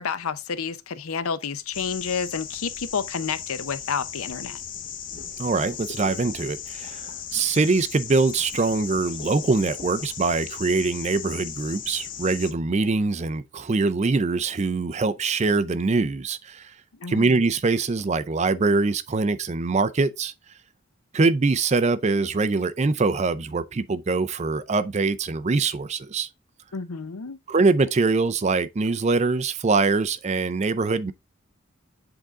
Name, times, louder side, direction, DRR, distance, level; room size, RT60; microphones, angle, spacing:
voice 1, 0.0-4.6 17.0-17.4 26.7-27.4, left 6 dB, 85° left, 0.6 m, -30 dB
sound 1, 1.7-12.5, left 8 dB, 40° left, 0.7 m, -37 dB
voice 2, 5.4-16.7 17.1-20.3 21.1-26.3 27.5-31.1, right 3 dB, 30° right, 0.4 m, -23 dB
7.8 x 3.8 x 3.6 m
head